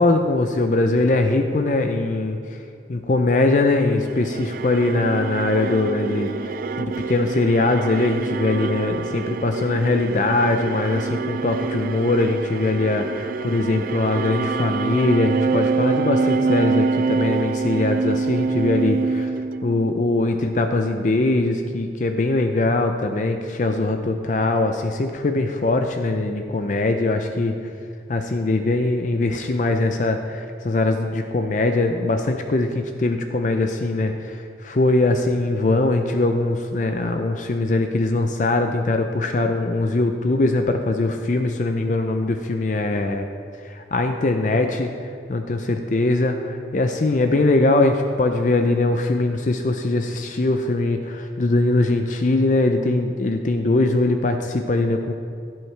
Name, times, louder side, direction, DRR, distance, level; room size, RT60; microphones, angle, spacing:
voice 1, 0.0-2.6 2.9-19.3 19.6-27.5 28.1-43.3 43.6-55.1, left 2 dB, 45° left, 5 dB, 0.5 m, -21 dB
sound 1, 3.9-20.2, right 4 dB, 50° right, 0.3 m, -26 dB
16.0 x 7.7 x 3.3 m, 2.2 s
head